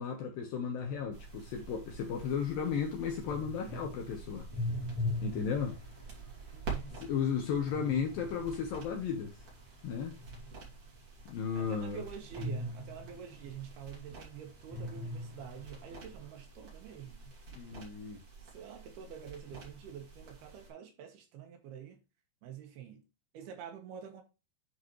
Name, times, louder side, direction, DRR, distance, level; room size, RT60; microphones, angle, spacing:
voice 1, 0.0-4.5 5.2-5.8 7.0-9.4 9.8-10.1 11.3-12.0 17.5-18.2, left 7 dB, 75° left, 2.2 m, -34 dB
sound 1, 0.8-11.0 12.3-14.2 14.6-16.3, left 1 dB, 20° right, 2.3 m, -42 dB
sound 2, 1.1-20.7, right 4 dB, 40° right, 2.8 m, -49 dB
voice 2, 6.5-7.0 11.5-17.3 18.4-22.0 22.4-23.0 23.3-24.2, right 8 dB, 70° right, 2.8 m, -47 dB
9.6 x 4.1 x 3.0 m
omnidirectional pair, 5.1 m